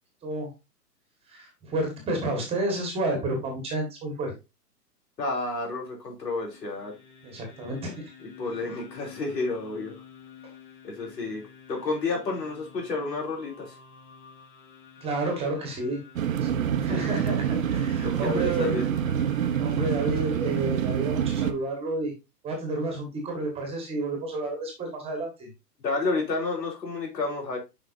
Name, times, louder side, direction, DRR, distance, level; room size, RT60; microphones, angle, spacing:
voice 1, 1.3-4.3 7.2-8.0 15.0-16.0 16.3-18.8 19.6-22.1 22.4-25.5, right 2 dB, 10° right, 2 dB, 1.6 m, -30 dB
voice 2, 5.2-6.9 8.4-9.9 10.8-11.4 11.7-13.7 16.9-17.1 18.0-18.9 25.8-27.6, left 3 dB, 85° left, 0 dB, 4.4 m, -30 dB
sound 1, 6.3-20.6, left 7 dB, 30° left, 2.0 m, -50 dB
sound 2, 16.2-21.5, right 9 dB, 55° right, 1.0 m, -26 dB
7.7 x 5.4 x 2.6 m, 0.25 s
hypercardioid pair, 150°, 49 cm